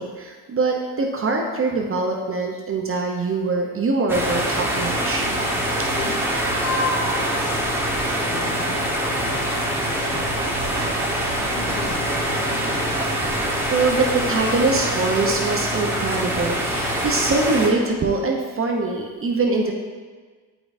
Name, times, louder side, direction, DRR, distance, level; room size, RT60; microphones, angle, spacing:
voice 1, 0.0-5.3 13.3-13.4 13.7-19.7, right 3 dB, 30° right, 1 dB, 0.8 m, -23 dB
sound 1, 4.1-17.7, right 1 dB, 5° right, 1.3 m, -24 dB
voice 2, 6.7-7.6 8.2-10.7 11.4-13.2, left 3 dB, 35° left, -1 dB, 1.4 m, -38 dB
7.8 x 4.9 x 2.7 m, 1.4 s
hypercardioid pair, 65°, 45 cm